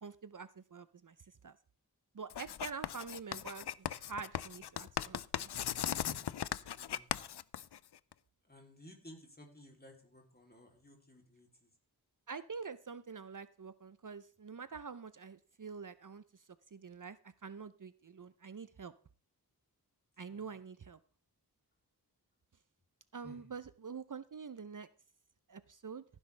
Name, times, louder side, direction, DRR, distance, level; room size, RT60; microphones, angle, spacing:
voice 1, 0.0-1.2 1.4-1.6 2.1-5.7 12.3-18.9 20.2-21.0 23.1-24.9 25.5-26.0, right 5 dB, 55° right, 14 dB, 0.6 m, -46 dB
Writing, 2.3-8.1, left 10 dB, 85° left, 0.5 m, -38 dB
voice 2, 6.7-7.1 8.4-11.7 20.3-20.5 23.2-23.5, equal, 25° left, 2 dB, 3.1 m, -56 dB
15.5 x 9.9 x 3.3 m, 0.41 s
wide cardioid pair, 60°, 38 cm